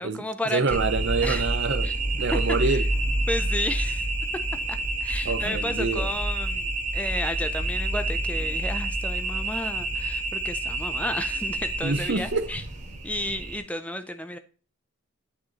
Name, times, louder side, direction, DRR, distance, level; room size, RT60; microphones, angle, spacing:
voice 1, 0.0-0.8 1.2-1.5 1.8-1.9 2.3-2.8 3.3-4.1 4.7-12.6 13.0-14.4, left 1 dB, 5° left, 0.4 m, -32 dB
voice 2, 0.5-2.9 5.2-6.1 11.8-12.5, right 3 dB, 50° right, 0.7 m, -26 dB
sound 1, 0.7-13.6, right 2 dB, 35° right, 1.6 m, -28 dB
8.7 x 4.6 x 4.0 m
head